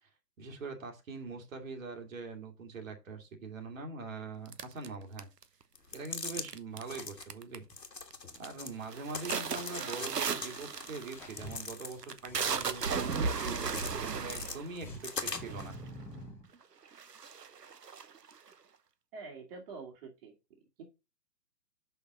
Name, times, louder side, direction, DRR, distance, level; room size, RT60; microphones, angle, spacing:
voice 1, 0.4-5.3 5.9-7.6 8.4-14.9 15.2-15.8, right 4 dB, 55° right, 2.4 m, -43 dB
sound 1, 4.5-5.6 6.4-7.0 7.2-7.7 8.1-8.5 8.8-15.9 16.5-16.6 16.9-18.5, right 5 dB, 75° right, 1.1 m, -36 dB
sound 2, 5.8-6.5 6.8-7.3 7.7-8.8 9.1-10.1 10.4-12.2 12.6-13.9 14.3-15.7, left 4 dB, 85° left, 1.5 m, -42 dB
sound 3, 11.1-13.9 14.4-16.5, left 1 dB, 5° left, 0.7 m, -48 dB
voice 2, 19.1-20.3 20.8-20.9, right 4 dB, 35° right, 2.0 m, -46 dB
6.5 x 5.7 x 5.0 m
figure-of-eight pair, 125°, 49 cm